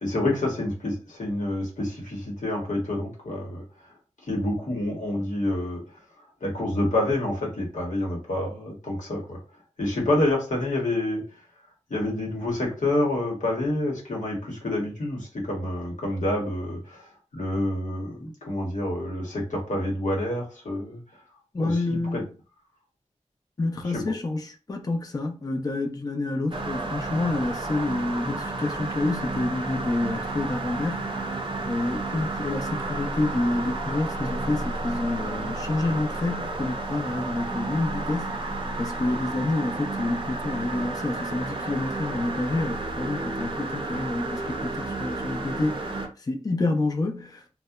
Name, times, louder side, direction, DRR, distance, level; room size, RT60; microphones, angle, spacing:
voice 1, 0.0-3.6 4.3-5.8 6.4-9.4 9.8-11.2 11.9-17.1 17.3-21.0 21.6-22.2 23.9-24.0, left 1 dB, 90° left, 0.9 m, -28 dB
voice 2, 21.5-22.3 23.6-47.4, left 2 dB, 30° left, 0.4 m, -28 dB
sound 1, 26.5-46.1, right 2 dB, 45° right, 0.5 m, -32 dB
2.7 x 2.1 x 2.3 m
wide cardioid pair, 70°, 13 cm